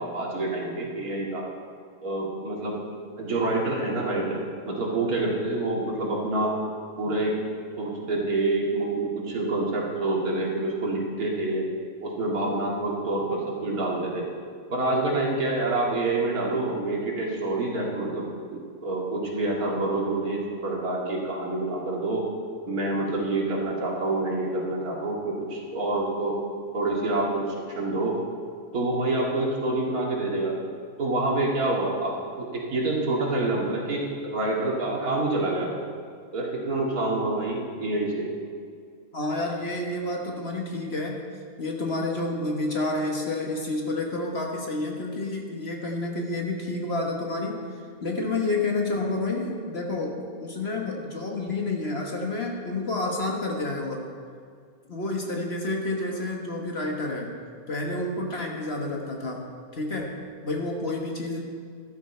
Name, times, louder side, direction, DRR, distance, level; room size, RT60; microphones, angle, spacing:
voice 1, 0.0-1.4 2.0-2.8 3.2-6.5 7.0-7.4 7.8-11.7 12.0-14.2 14.7-22.3 22.7-26.3 26.7-28.2 28.7-30.5 31.0-35.7 36.3-38.2, right 2 dB, 80° right, -2 dB, 2.6 m, -27 dB
voice 2, 39.1-41.3 41.6-47.6 48.0-54.1 54.9-57.3 57.7-59.5 59.7-61.4, left 2 dB, 45° left, 0 dB, 1.6 m, -29 dB
12.5 x 12.5 x 4.4 m, 2.2 s
omnidirectional pair, 1.5 m